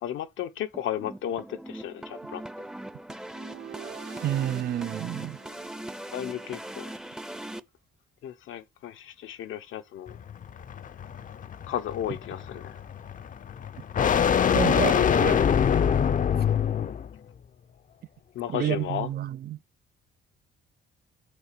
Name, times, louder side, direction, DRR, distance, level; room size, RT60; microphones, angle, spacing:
voice 1, 0.0-2.4 6.1-6.9 8.2-10.2 11.7-12.7 18.3-19.1, left 11 dB, 80° left, 0.9 m, -34 dB
sound 1, 0.7-7.6, right 1 dB, 5° right, 0.6 m, -40 dB
sound 2, 3.3-6.5, right 11 dB, 70° right, 0.9 m, -46 dB
voice 2, 4.2-5.4 12.1-12.2 14.5-15.5 18.5-19.6, right 11 dB, 50° right, 0.5 m, -29 dB
sound 3, 10.1-17.1, left 8 dB, 40° left, 0.6 m, -25 dB
10.5 x 3.7 x 6.8 m
cardioid pair, 90°, 20 cm